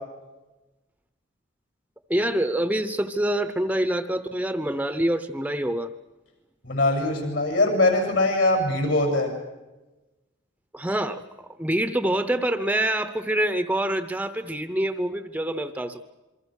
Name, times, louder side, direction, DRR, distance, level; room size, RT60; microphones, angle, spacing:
voice 1, 2.1-5.9 10.7-11.2 11.6-16.0, right 1 dB, 5° right, 10 dB, 0.8 m, -26 dB
voice 2, 6.6-9.3, left 2 dB, 70° left, 3 dB, 7.3 m, -22 dB
27.5 x 23.5 x 6.4 m, 1.1 s
head